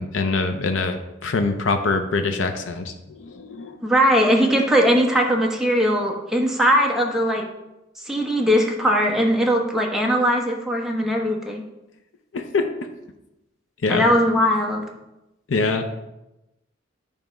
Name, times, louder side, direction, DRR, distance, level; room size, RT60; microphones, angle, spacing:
voice 1, 0.0-3.8 12.3-12.7 13.8-14.0 15.5-15.9, left 3 dB, 90° left, 6 dB, 0.6 m, -24 dB
voice 2, 3.8-7.5 8.0-11.6 13.9-14.8, equal, ahead, 0 dB, 1.0 m, -20 dB
9.0 x 3.4 x 5.2 m, 0.94 s
head